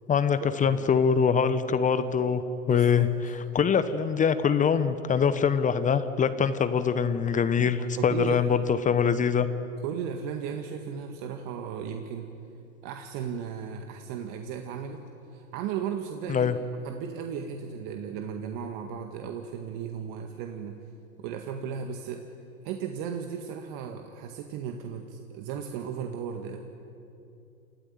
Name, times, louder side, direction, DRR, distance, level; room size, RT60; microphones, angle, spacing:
voice 1, 0.1-2.4 2.7-3.1 3.5-9.5 16.3-16.5, left 6 dB, 20° left, 12 dB, 1.0 m, -23 dB
voice 2, 2.7-3.1 7.9-8.4 9.8-12.3 12.8-15.0 15.3-16.5 16.8-20.8 21.2-22.2 22.6-26.6, right 7 dB, 45° right, 4 dB, 1.8 m, -35 dB
29.5 x 14.0 x 9.3 m, 2.7 s
hypercardioid pair, 100°, 41 cm